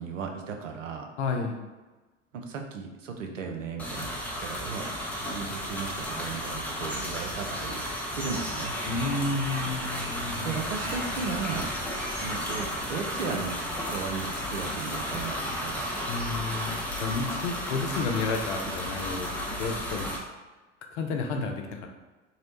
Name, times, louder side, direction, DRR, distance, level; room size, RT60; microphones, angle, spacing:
voice 1, 0.0-1.1 2.3-4.1 4.4-4.9 5.3-7.8 8.1-8.7 10.4-11.7 12.1-13.6 13.9-15.9, right 5 dB, 80° right, 3 dB, 0.5 m, -35 dB
voice 2, 1.2-1.6 8.8-10.6 16.1-19.3 19.6-20.1 20.9-21.9, left 3 dB, 65° left, 3 dB, 0.5 m, -31 dB
sound 1, 3.8-20.2, equal, 5° left, 0.4 m, -33 dB
2.7 x 2.0 x 2.9 m, 1.2 s
figure-of-eight pair, 80°, 37 cm